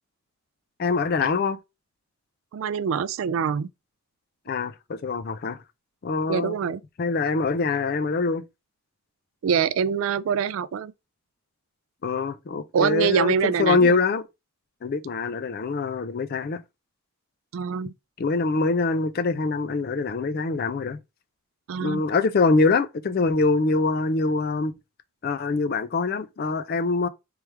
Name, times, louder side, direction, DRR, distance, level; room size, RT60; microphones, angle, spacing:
voice 1, 0.8-1.6 4.5-5.6 6.0-6.5 7.0-8.4 12.0-14.2 14.8-16.6 18.2-21.0 21.8-24.7 25.2-27.1, left 4 dB, 45° left, 0.3 m, -24 dB
voice 2, 2.5-3.7 6.3-6.8 9.4-10.9 12.7-14.0 17.5-17.9 21.7-22.0, right 7 dB, 65° right, 0.3 m, -24 dB
3.3 x 3.1 x 3.3 m
head